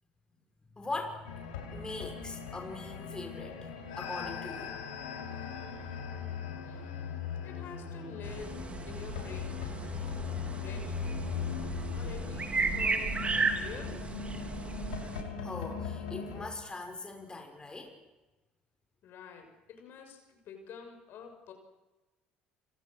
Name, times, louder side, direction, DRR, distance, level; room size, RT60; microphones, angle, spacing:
voice 1, 0.7-4.7 15.4-17.9, left 3 dB, 20° left, 3 dB, 5.8 m, -41 dB
sound 1, 1.2-16.5, left 6 dB, 75° left, 6.1 m, -39 dB
voice 2, 6.6-8.6 8.9-9.6 10.6-11.3 11.9-14.2 19.0-21.5, left 6 dB, 55° left, 5 dB, 6.4 m, -48 dB
sound 2, 8.2-15.2, right 4 dB, 25° right, 3.1 m, -35 dB
28.5 x 25.0 x 6.5 m, 1.1 s
hypercardioid pair, 60°, 4 cm